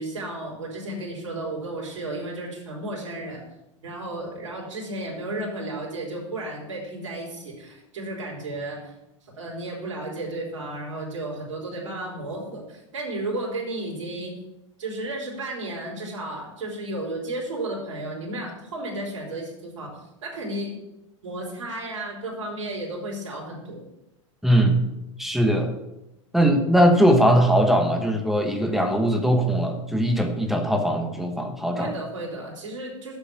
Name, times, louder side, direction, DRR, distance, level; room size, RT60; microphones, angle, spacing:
voice 1, 0.0-3.5 3.8-8.9 9.3-14.4 14.8-20.8 21.2-23.8 31.8-33.2, right 1 dB, 70° right, -4 dB, 3.6 m, -33 dB
voice 2, 24.4-24.8 25.2-25.7 26.3-31.9, equal, ahead, 4 dB, 1.2 m, -20 dB
7.4 x 7.2 x 5.9 m, 0.93 s
hypercardioid pair, 105°, 17 cm